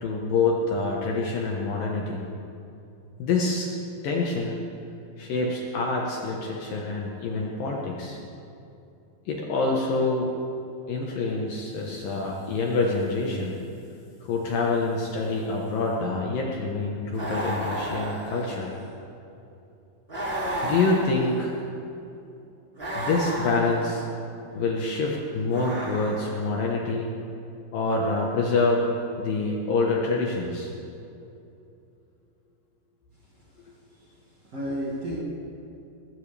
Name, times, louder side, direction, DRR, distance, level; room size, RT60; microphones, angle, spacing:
voice 1, 0.0-2.2 3.2-3.7 4.0-4.6 5.2-8.2 9.3-10.3 10.9-13.6 14.2-18.7 20.6-21.6 23.0-24.0 24.6-27.1 27.7-28.9 29.2-30.7, left 3 dB, 65° left, -1 dB, 2.4 m, -26 dB
sound 1, 17.1-18.9 20.1-21.6 22.7-24.1 25.5-26.6, right 1 dB, 20° right, 2.0 m, -32 dB
voice 2, 33.3-34.1 34.4-35.2, equal, 45° right, -5 dB, 2.3 m, -34 dB
20.5 x 16.5 x 3.4 m, 2.7 s
omnidirectional pair, 5.1 m